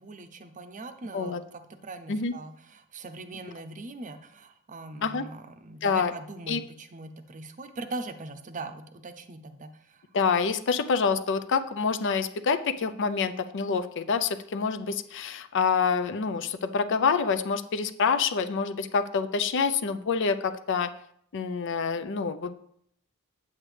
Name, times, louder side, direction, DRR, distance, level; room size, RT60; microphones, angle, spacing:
voice 1, 0.0-10.0, right 2 dB, 35° right, 8 dB, 0.6 m, -41 dB
voice 2, 5.8-6.1 6.5-6.6 10.1-20.9 21.3-22.5, left 5 dB, 60° left, 10 dB, 0.5 m, -27 dB
8.6 x 8.0 x 3.3 m, 0.70 s
head